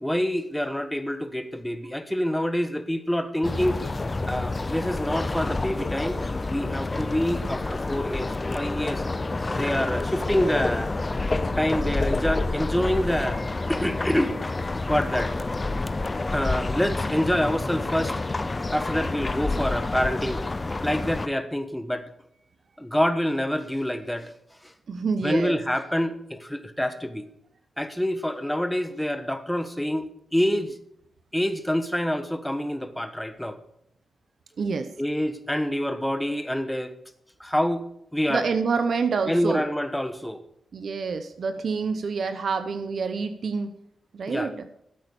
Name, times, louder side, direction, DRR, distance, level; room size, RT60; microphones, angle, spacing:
voice 1, 0.0-3.9 4.2-6.2 6.5-9.0 9.5-10.9 11.6-13.4 13.7-14.4 14.9-15.3 16.3-18.2 18.7-20.4 20.8-22.0 22.8-24.3 24.6-24.7 25.2-27.2 27.8-30.8 31.3-33.6 35.0-36.9 37.4-37.8 38.1-38.4 39.3-40.4 44.3-44.5, equal, 5° left, 10 dB, 1.3 m, -26 dB
sound 1, 3.4-21.3, left 2 dB, 25° left, 0.7 m, -28 dB
voice 2, 24.9-25.6 34.6-34.9 38.3-39.6 40.7-43.7 44.1-44.7, right 5 dB, 65° right, 9 dB, 0.9 m, -27 dB
12.5 x 8.8 x 7.0 m, 0.73 s
cardioid pair, 90°, 0 cm